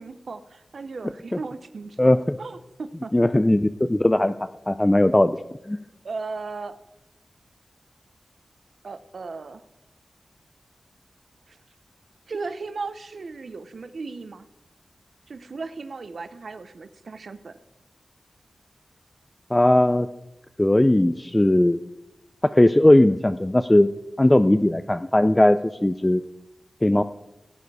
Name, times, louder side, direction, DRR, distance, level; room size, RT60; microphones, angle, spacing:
voice 1, 0.0-2.0 2.4-3.1 6.0-6.8 8.8-9.6 11.5-11.6 12.3-14.5 15.3-17.6, right 4 dB, 70° right, 11 dB, 0.7 m, -36 dB
voice 2, 2.0-2.4 3.1-4.3 4.7-5.4 5.7-5.8 19.5-20.1 20.6-21.8 22.4-23.9 24.2-26.2 26.8-27.0, left 1 dB, 15° left, 11 dB, 0.4 m, -18 dB
16.5 x 9.2 x 4.8 m, 0.92 s
wide cardioid pair, 115°, 0 cm